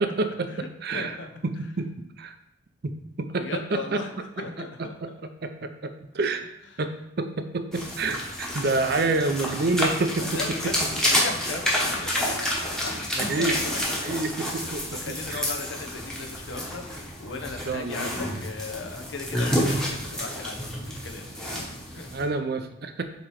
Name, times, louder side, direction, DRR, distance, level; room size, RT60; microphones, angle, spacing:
voice 1, 0.0-1.2 1.4-1.9 2.2-2.3 2.8-4.1 4.4-6.5 6.8-10.7 13.2-15.4 17.7-18.4 22.1-23.0, right 3 dB, 50° right, 8 dB, 0.5 m, -29 dB
voice 2, 0.9-1.3 3.4-4.1 4.4-4.9 8.9-9.1 10.2-13.8 14.6-22.1, left 4 dB, 65° left, 5 dB, 0.8 m, -37 dB
sound 1, 7.7-22.2, left 1 dB, 5° left, 1.1 m, -29 dB
7.5 x 3.0 x 4.7 m, 0.78 s
head